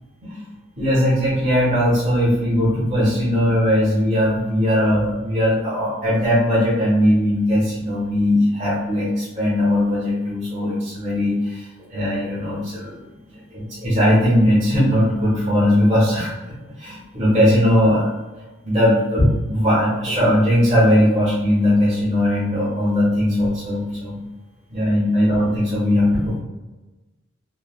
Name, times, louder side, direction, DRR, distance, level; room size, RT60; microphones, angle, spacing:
voice 1, 0.8-13.0 13.5-18.1 18.6-24.2 24.7-26.4, equal, 35° right, -9 dB, 0.9 m, -19 dB
3.1 x 2.2 x 2.4 m, 1.1 s
head